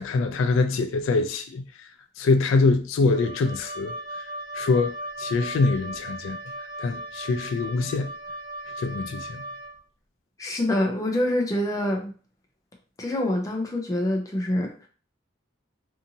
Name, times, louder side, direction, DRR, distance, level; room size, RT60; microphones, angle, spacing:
voice 1, 0.0-1.6 2.2-3.9 4.5-6.4 6.8-8.1 8.8-9.4, left 3 dB, 80° left, 0.3 m, -24 dB
Wind instrument woodwind instrument, 3.1-9.8, right 1 dB, 45° right, 0.6 m, -37 dB
voice 2, 10.4-12.1 13.0-14.7, left 1 dB, 15° left, 0.4 m, -25 dB
2.7 x 2.5 x 2.6 m
head